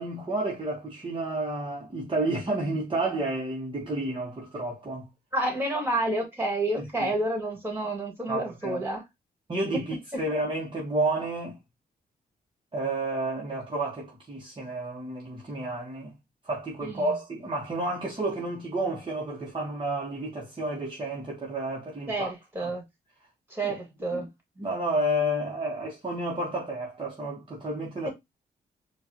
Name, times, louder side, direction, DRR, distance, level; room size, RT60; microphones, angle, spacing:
voice 1, 0.0-5.1 5.7-5.8 6.8-7.1 8.3-8.8 9.5-11.6 12.7-16.1 16.4-22.3 22.6-22.7 23.6-23.8 24.1-24.3 24.6-28.1, right 1 dB, 30° right, 1.2 m, -31 dB
voice 2, 5.3-9.0 10.1-10.2 16.8-17.2 22.1-22.8 23.5-24.3, right 1 dB, 15° right, 2.1 m, -29 dB
4.7 x 2.6 x 2.9 m
cardioid pair, 80°, 17 cm